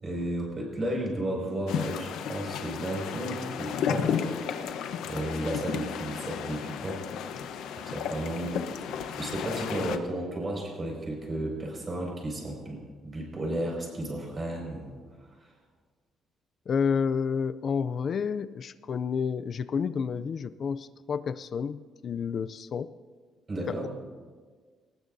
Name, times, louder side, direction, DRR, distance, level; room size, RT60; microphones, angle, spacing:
voice 1, 0.0-7.0 7.8-8.6 9.2-14.9 15.2-15.5 23.5-23.9, right 1 dB, 30° right, -1 dB, 5.5 m, -33 dB
sound 1, 1.7-10.0, left 7 dB, 90° left, 0.9 m, -33 dB
voice 2, 16.7-22.9 23.7-23.9, left 6 dB, 45° left, 14 dB, 0.4 m, -30 dB
22.0 x 19.5 x 2.7 m, 1.5 s
cardioid pair, 140°, 0 cm